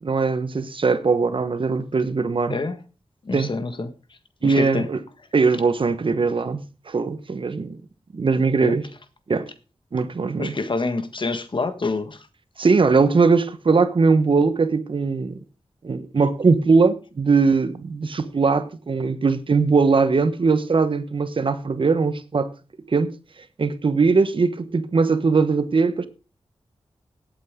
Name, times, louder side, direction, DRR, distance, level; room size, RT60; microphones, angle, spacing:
voice 1, 0.0-2.6 3.3-3.5 4.4-5.0 5.3-7.8 8.1-8.9 9.3-9.5 9.9-10.5 12.6-15.4 15.8-22.5 22.9-23.1 23.6-26.1, right 4 dB, 60° right, 1.2 m, -20 dB
voice 2, 3.2-3.9 4.4-4.9 8.6-8.8 10.4-12.3, left 3 dB, 55° left, 1.6 m, -26 dB
18.0 x 8.3 x 3.7 m
cardioid pair, 65°, 10 cm